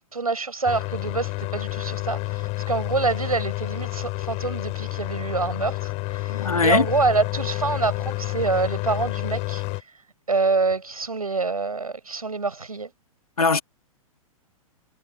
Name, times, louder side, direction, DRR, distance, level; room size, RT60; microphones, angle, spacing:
voice 1, 0.1-9.6 10.3-12.9, right 4 dB, 85° right, 6.4 m, -26 dB
sound 1, 0.7-9.8, left 24 dB, 40° left, 4.9 m, -29 dB
voice 2, 6.3-6.9 13.4-13.6, left 4 dB, 85° left, 2.4 m, -20 dB
figure-of-eight pair, 110°, 18 cm